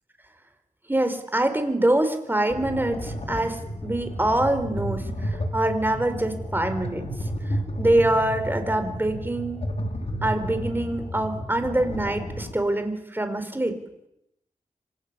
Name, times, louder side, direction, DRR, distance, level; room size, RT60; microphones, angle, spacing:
voice 1, 0.9-7.0 7.5-9.6 10.2-13.8, right 1 dB, 15° right, 8 dB, 4.4 m, -25 dB
sound 1, 2.5-12.5, equal, 50° left, 5.3 m, -32 dB
26.5 x 26.0 x 8.8 m, 0.82 s
wide cardioid pair, 115°, 14 cm